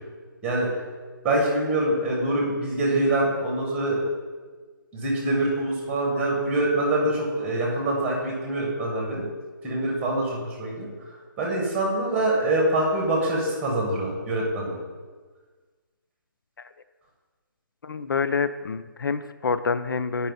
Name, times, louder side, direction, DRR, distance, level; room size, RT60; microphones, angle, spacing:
voice 1, 1.2-4.0 4.9-9.3 9.6-10.9 11.4-14.8, right 1 dB, 10° right, -2 dB, 1.7 m, -25 dB
voice 2, 17.8-20.3, left 5 dB, 80° left, 12 dB, 0.4 m, -27 dB
8.9 x 5.4 x 4.1 m, 1.4 s
hypercardioid pair, 160°, 11 cm